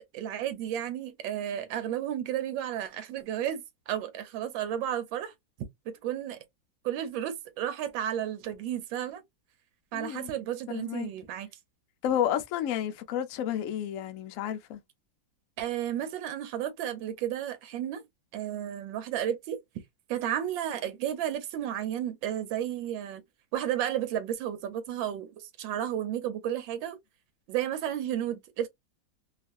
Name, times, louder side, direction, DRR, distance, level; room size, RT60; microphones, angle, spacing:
voice 1, 0.1-5.3 6.0-6.4 6.8-9.2 9.9-11.5 15.6-18.0 18.3-19.6 20.1-23.2 23.5-27.0 27.5-28.7, right 10 dB, 85° right, 1.4 m, -32 dB
voice 2, 9.9-10.3 10.7-11.1 12.0-14.8, left 10 dB, 90° left, 0.7 m, -31 dB
3.0 x 2.4 x 2.4 m
omnidirectional pair, 2.0 m